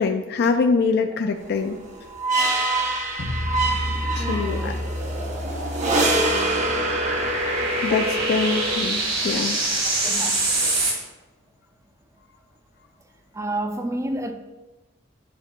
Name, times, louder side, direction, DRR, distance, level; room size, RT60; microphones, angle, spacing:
voice 1, 0.0-1.8 4.2-4.7 7.8-9.6, left 4 dB, 55° left, 0.3 m, -23 dB
sound 1, 1.6-8.8, right 2 dB, 40° right, 0.8 m, -25 dB
sound 2, 3.2-8.2, left 1 dB, 75° left, 0.8 m, -31 dB
sound 3, 3.4-10.9, right 2 dB, 80° right, 1.8 m, -27 dB
voice 2, 4.2-4.9 7.9-8.1 9.8-10.8 13.3-14.3, right 1 dB, 15° right, 0.4 m, -31 dB
9.4 x 4.8 x 2.2 m
head